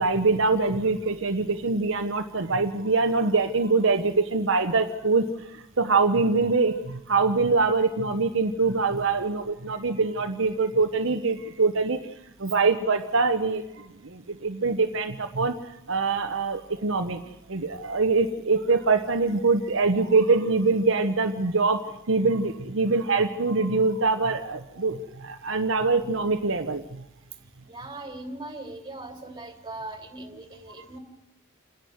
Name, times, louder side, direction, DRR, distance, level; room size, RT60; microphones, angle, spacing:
voice 1, 0.0-17.2 17.5-27.1 30.8-30.9, right 3 dB, 65° right, 5 dB, 1.1 m, -24 dB
voice 2, 27.6-31.0, right 2 dB, 20° right, 5 dB, 3.0 m, -39 dB
28.5 x 11.0 x 9.4 m, 0.91 s
head